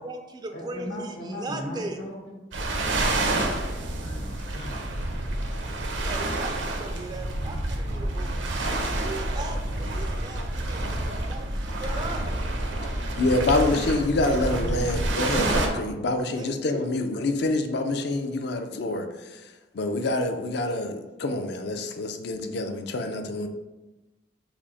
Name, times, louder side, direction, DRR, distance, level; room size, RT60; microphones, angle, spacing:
voice 1, 0.0-2.1 6.0-8.4 8.9-12.2 16.3-16.9, right 2 dB, 25° right, 0.3 m, -38 dB
voice 2, 0.5-2.4 4.0-5.2 12.9-13.3, equal, 80° left, 1.3 m, -38 dB
sound 1, 2.5-15.7, right 1 dB, 80° right, 0.7 m, -28 dB
voice 3, 13.2-23.5, left 2 dB, 60° left, 0.5 m, -26 dB
5.8 x 2.1 x 4.0 m
head